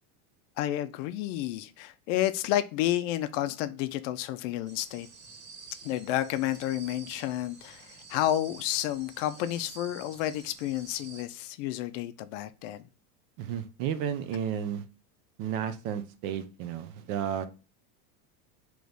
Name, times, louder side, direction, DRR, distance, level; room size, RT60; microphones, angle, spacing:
voice 1, 0.6-5.1 5.8-12.8, left 13 dB, 55° left, 0.5 m, -31 dB
sound 1, 4.7-11.2, right 5 dB, 75° right, 1.8 m, -50 dB
voice 2, 13.4-14.8 15.4-17.5, right 9 dB, 50° right, 0.7 m, -32 dB
3.3 x 3.1 x 3.9 m
supercardioid pair, 135°, 47 cm